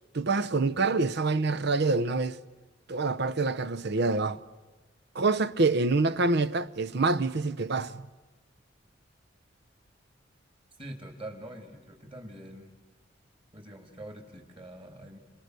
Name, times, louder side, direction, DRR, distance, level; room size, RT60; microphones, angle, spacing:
voice 1, 0.1-2.4 2.9-4.4 5.1-8.0, right 3 dB, 60° right, 0.8 m, -26 dB
voice 2, 10.8-12.7 13.5-15.2, right 1 dB, 30° right, 3.4 m, -44 dB
29.5 x 27.0 x 6.8 m
head